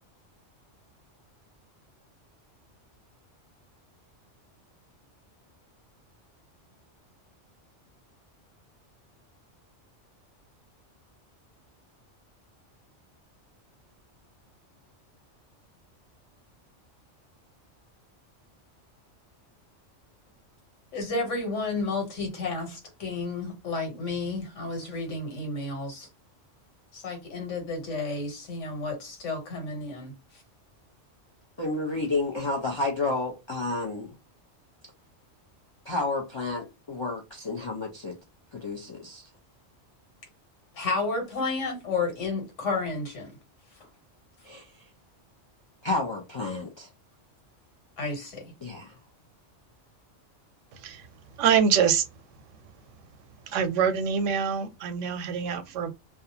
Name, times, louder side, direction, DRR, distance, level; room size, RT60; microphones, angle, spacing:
voice 1, 20.9-26.1 26.9-30.1 40.7-43.3 48.0-48.5, left 3 dB, 90° left, 1.4 m, -31 dB
voice 2, 31.6-34.2 35.9-38.2 38.5-39.3 44.4-44.8 45.8-46.9 48.6-48.9, left 2 dB, 45° left, 0.3 m, -31 dB
voice 3, 51.4-52.1 53.5-55.9, right 7 dB, 90° right, 0.9 m, -25 dB
2.4 x 2.2 x 2.7 m
omnidirectional pair, 1.2 m